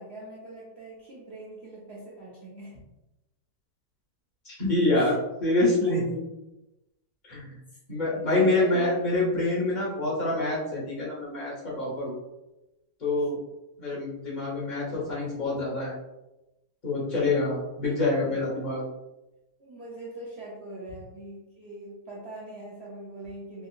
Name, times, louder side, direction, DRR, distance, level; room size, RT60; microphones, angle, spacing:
voice 1, 0.0-2.8 4.9-5.2 5.8-6.0 8.1-8.9 18.2-18.5 19.6-23.7, right 2 dB, 55° right, -7 dB, 0.8 m, -42 dB
voice 2, 4.4-6.2 7.3-7.5 7.9-12.1 13.0-13.4 13.8-15.9 16.8-18.8, left 2 dB, 30° left, -6 dB, 1.2 m, -26 dB
3.4 x 2.8 x 2.4 m, 0.95 s
omnidirectional pair, 1.8 m